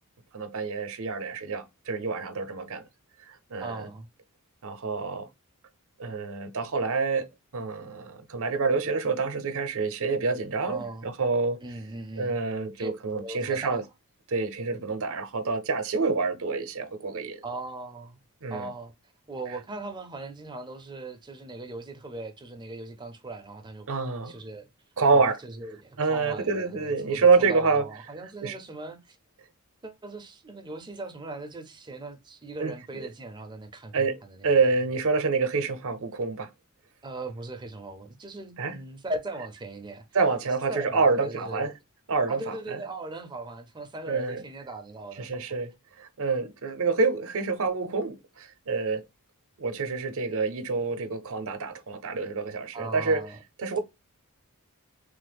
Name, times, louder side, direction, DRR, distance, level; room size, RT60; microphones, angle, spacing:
voice 1, 0.3-2.8 3.3-3.9 4.6-5.3 6.0-7.3 7.5-11.6 12.2-13.8 14.3-17.4 18.4-18.7 23.9-24.4 25.0-25.4 26.0-27.8 28.4-28.6 32.6-33.1 33.9-36.5 38.6-38.8 40.1-41.7 42.1-42.8 44.0-44.4 45.2-45.7 46.0-49.0 49.6-53.3 53.6-53.8, right 4 dB, 65° right, 0.6 m, -27 dB
voice 2, 3.6-4.1 10.6-11.1 11.6-12.4 12.8-12.9 13.2-13.8 17.4-18.2 18.5-18.9 19.3-23.9 24.3-24.7 25.1-29.2 29.8-34.6 37.0-40.0 40.7-41.7 42.3-45.3 52.7-53.4, right 2 dB, 20° right, 0.5 m, -39 dB
3.2 x 2.0 x 3.3 m
head